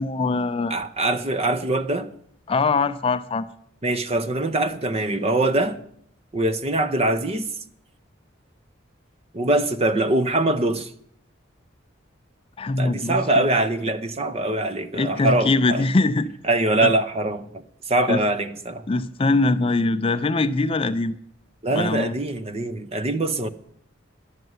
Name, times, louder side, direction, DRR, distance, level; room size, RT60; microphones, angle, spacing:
voice 1, 0.0-0.7 2.5-3.4 12.6-13.5 15.0-16.3 16.8-16.9 18.1-18.2 18.9-21.1 21.8-22.1, left 3 dB, 30° left, 0.4 m, -22 dB
voice 2, 0.7-2.1 3.8-5.8 6.3-7.5 9.3-10.9 12.8-15.9 16.4-18.9 21.6-23.5, right 2 dB, 30° right, 0.7 m, -23 dB
11.0 x 6.6 x 9.4 m
head